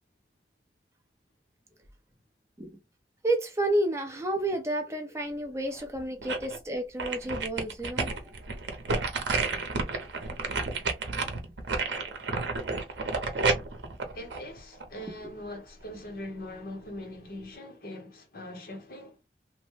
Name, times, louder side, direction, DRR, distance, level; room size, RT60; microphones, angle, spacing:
voice 1, 3.2-8.3 12.0-12.2, right 1 dB, 15° right, 0.5 m, -30 dB
sound 1, 5.7-6.6 7.0-15.1 15.5-15.6, right 4 dB, 80° right, 0.6 m, -31 dB
voice 2, 14.1-19.2, left 1 dB, 55° left, 0.9 m, -41 dB
3.0 x 2.1 x 3.1 m
head